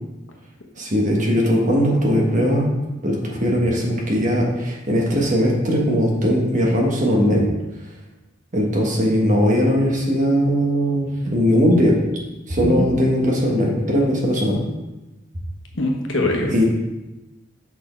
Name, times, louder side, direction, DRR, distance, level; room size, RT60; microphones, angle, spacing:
voice 1, 0.8-2.7 3.0-7.5 8.5-12.0 12.5-14.6 16.5-16.6, equal, 40° right, -1 dB, 1.2 m, -19 dB
voice 2, 15.8-16.6, left 1 dB, 85° left, 1 dB, 1.1 m, -22 dB
6.1 x 4.2 x 4.4 m, 1.0 s
head